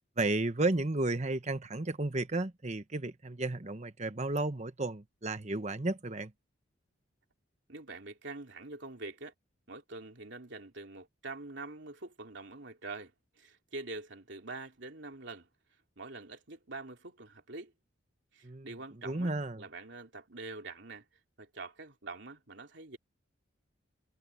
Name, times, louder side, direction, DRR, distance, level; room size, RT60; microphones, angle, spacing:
voice 1, 0.2-6.3 18.4-18.7 19.0-19.6, right 2 dB, 35° right, 1.1 m, -33 dB
voice 2, 7.7-9.3 9.7-13.1 13.4-15.5 16.0-17.7 18.3-21.0 21.4-23.0, right 3 dB, 60° right, 3.2 m, -45 dB
head